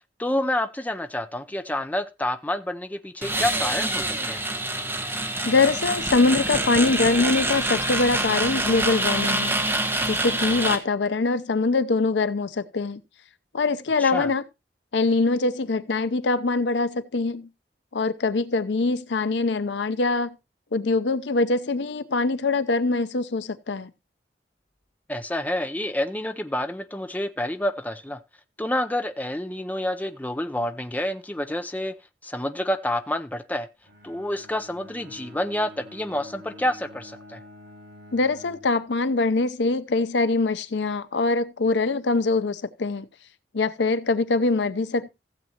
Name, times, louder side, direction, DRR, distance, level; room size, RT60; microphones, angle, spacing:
voice 1, 0.2-4.4 14.0-14.3 25.1-28.2 28.6-31.9 32.2-33.7 34.0-37.4, left 1 dB, 10° left, 0.5 m, -28 dB
sound 1, 3.2-10.8, right 1 dB, 10° right, 1.2 m, -26 dB
voice 2, 5.4-9.6 10.1-13.0 13.5-14.4 14.9-17.5 17.9-20.3 20.7-23.9 38.1-43.1 43.5-45.1, left 3 dB, 85° left, 0.7 m, -23 dB
Bowed string instrument, 33.8-38.7, left 1 dB, 75° right, 6.6 m, -47 dB
15.5 x 7.5 x 2.9 m
head